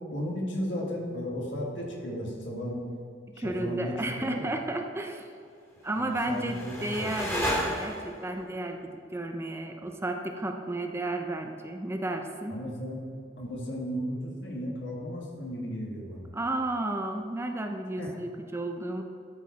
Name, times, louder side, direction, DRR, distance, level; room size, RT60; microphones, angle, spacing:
voice 1, 0.0-2.8 3.3-4.4 5.9-7.1 12.5-13.0 13.4-16.3 18.0-18.1, equal, 80° left, -1 dB, 1.7 m, -35 dB
voice 2, 3.4-5.3 5.8-12.6 16.3-19.0, right 2 dB, 15° right, 4 dB, 0.5 m, -33 dB
sound 1, 5.9-8.3, equal, 15° left, 2.2 m, -33 dB
12.0 x 4.7 x 4.2 m, 2.3 s
head